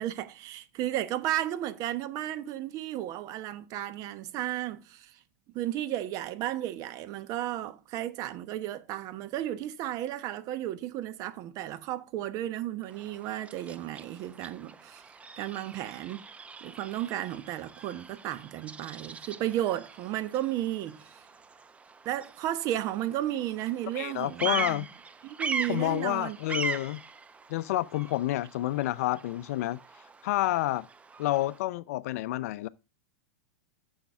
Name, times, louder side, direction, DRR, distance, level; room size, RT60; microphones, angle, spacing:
voice 1, 0.0-5.2 5.5-15.1 15.4-16.3 16.6-21.2 22.0-24.8 25.2-26.4, right 13 dB, 40° right, 1.0 m, -33 dB
Bird vocalization bird call bird song, 12.8-31.6, right 4 dB, 15° right, 0.7 m, -41 dB
voice 2, 23.9-24.9 25.7-27.0 27.5-29.8 30.2-30.9 31.2-32.7, left 16 dB, 60° left, 0.5 m, -29 dB
10.0 x 7.2 x 3.5 m
hypercardioid pair, 110°, 9 cm